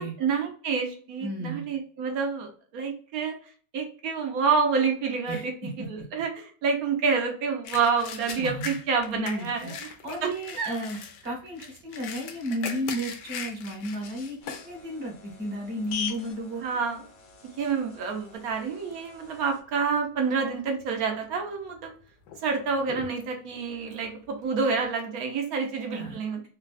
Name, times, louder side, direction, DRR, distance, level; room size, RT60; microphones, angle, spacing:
voice 1, 0.0-3.4 3.7-9.8 10.2-10.8 16.6-17.0 17.6-21.9 22.4-26.4, right 5 dB, 65° right, 3 dB, 1.1 m, -28 dB
voice 2, 1.2-1.7 5.3-5.7 8.4-8.8 9.1-9.7 10.0-11.0 11.2-16.6 25.5-26.2, equal, 45° right, -1 dB, 1.2 m, -33 dB
sound 1, 7.6-14.7 15.2-15.3 15.8-16.2 16.9-17.1 17.4-18.6 18.9-19.4 19.8-19.9 20.8-21.4 21.7-24.8, left 6 dB, 85° left, 1.2 m, -41 dB
sound 2, 14.4-19.6, left 7 dB, 65° left, 1.0 m, -42 dB
3.3 x 2.2 x 2.2 m, 0.43 s
omnidirectional pair, 1.8 m